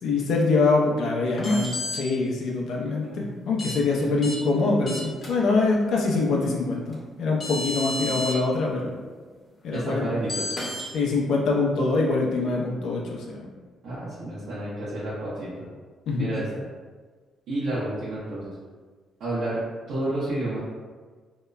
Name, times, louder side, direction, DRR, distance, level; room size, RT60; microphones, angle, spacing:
voice 1, 0.0-8.9 9.6-10.1 10.9-13.0 13.3-13.4 16.1-16.3, left 3 dB, 75° left, -2 dB, 0.5 m, -24 dB
sound 1, 1.4-2.0 3.6-3.7 4.2-4.4 4.9-5.3 6.9-7.0 7.4-8.3 10.3-10.8, left 2 dB, 40° left, 0.9 m, -31 dB
voice 2, 9.7-10.5 13.8-15.5 16.2-16.5 17.5-18.5 19.2-19.6 19.9-20.6, right 1 dB, 85° right, -12 dB, 0.8 m, -30 dB
2.8 x 2.1 x 2.3 m, 1.5 s
cardioid pair, 90°, 0 cm